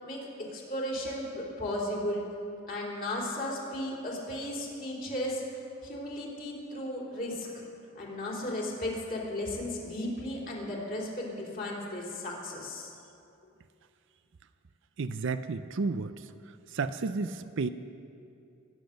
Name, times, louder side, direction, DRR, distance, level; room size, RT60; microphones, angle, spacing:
voice 1, 0.0-2.2 2.7-5.4 5.8-7.5 7.9-12.9, left 1 dB, 45° left, -3 dB, 3.5 m, -35 dB
voice 2, 15.0-16.3 16.7-17.7, right 4 dB, 60° right, 11 dB, 0.5 m, -32 dB
22.0 x 9.9 x 6.6 m, 2.6 s
head